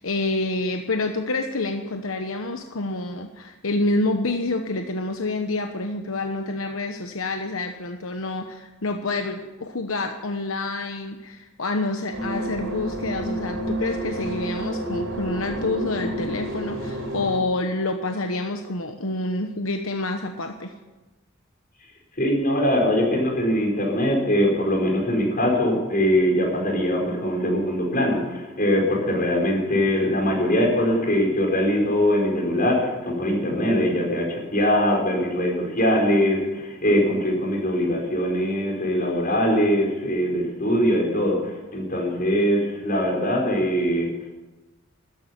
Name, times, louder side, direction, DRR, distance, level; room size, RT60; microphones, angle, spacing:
voice 1, 0.0-20.7, left 2 dB, 80° left, 5 dB, 1.1 m, -28 dB
sound 1, 12.1-17.4, right 1 dB, 75° right, 3.7 m, -29 dB
voice 2, 22.2-44.1, equal, 40° left, 0 dB, 5.0 m, -22 dB
13.5 x 10.5 x 10.0 m, 1.1 s
head